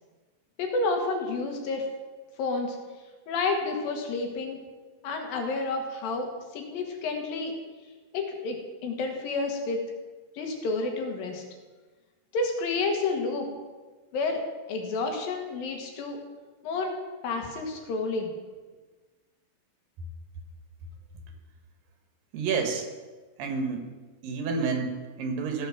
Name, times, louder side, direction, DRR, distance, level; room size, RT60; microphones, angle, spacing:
voice 1, 0.6-1.9 2.4-2.8 3.3-4.6 5.0-7.5 8.1-8.6 8.8-9.8 10.4-11.4 12.3-13.5 14.1-14.4 14.7-16.2 16.6-17.0 17.2-18.3, left 3 dB, 85° left, 3 dB, 3.3 m, -30 dB
voice 2, 22.3-22.8 23.4-23.9 24.2-25.7, right 5 dB, 80° right, 4 dB, 3.1 m, -29 dB
15.0 x 6.8 x 6.1 m, 1.3 s
omnidirectional pair, 4.0 m